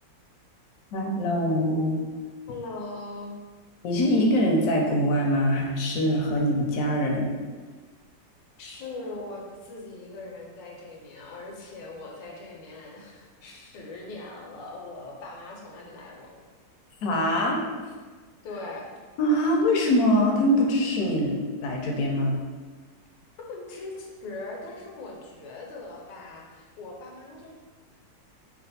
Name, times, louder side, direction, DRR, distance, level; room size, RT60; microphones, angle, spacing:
voice 1, 0.9-2.0 3.8-7.3 17.0-17.6 19.2-21.3 21.6-22.4, equal, 65° left, 0 dB, 0.9 m, -23 dB
voice 2, 2.5-3.4 8.6-16.4 18.4-18.9 23.5-27.5, left 2 dB, 85° left, -1 dB, 1.4 m, -40 dB
3.2 x 2.4 x 4.0 m, 1.4 s
omnidirectional pair, 1.9 m